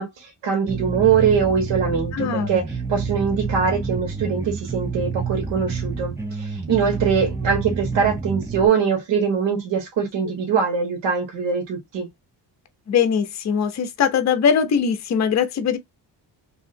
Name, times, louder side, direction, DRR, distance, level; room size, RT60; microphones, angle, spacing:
voice 1, 0.0-12.1, right 6 dB, 80° right, 1.2 m, -22 dB
sound 1, 0.7-8.7, right 5 dB, 5° right, 0.6 m, -28 dB
voice 2, 2.1-2.6 12.9-15.8, left 7 dB, 40° left, 0.6 m, -21 dB
3.0 x 2.7 x 2.7 m
cardioid pair, 125°, 42 cm